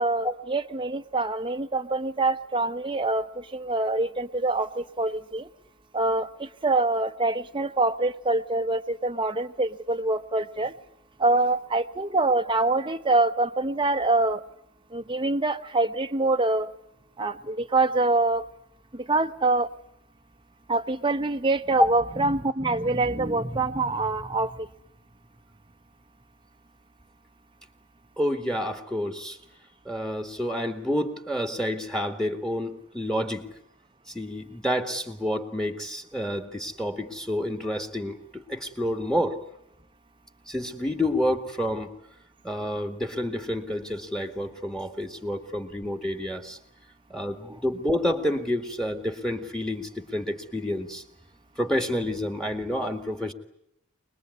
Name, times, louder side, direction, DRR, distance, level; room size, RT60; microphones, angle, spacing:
voice 1, 0.0-5.5 5.9-10.7 11.2-14.4 14.9-16.7 17.2-18.4 18.9-19.7 20.7-24.7, right 2 dB, 20° right, 9 dB, 1.0 m, -25 dB
voice 2, 28.2-29.4 29.9-33.5 34.1-39.4 40.5-41.9 42.4-46.6 47.1-51.0 51.6-53.3, left 1 dB, 5° left, 8 dB, 1.9 m, -29 dB
25.5 x 20.5 x 9.6 m, 0.78 s
head